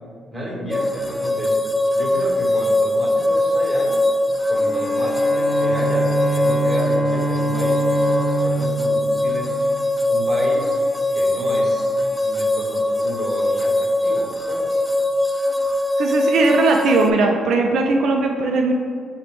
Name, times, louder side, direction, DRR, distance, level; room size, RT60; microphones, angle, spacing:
voice 1, 0.3-1.5 1.9-3.9 4.5-9.5 10.1-10.8 11.1-11.9 12.2-14.8, equal, 10° right, -5 dB, 1.4 m, -31 dB
sound 1, 0.7-17.1, left 1 dB, 10° left, 0.3 m, -21 dB
Bowed string instrument, 4.5-10.1, right 1 dB, 25° left, 0.7 m, -25 dB
voice 2, 16.0-18.7, right 3 dB, 70° right, 2 dB, 0.4 m, -18 dB
6.5 x 2.2 x 3.7 m, 2.2 s
cardioid pair, 90°, 0 cm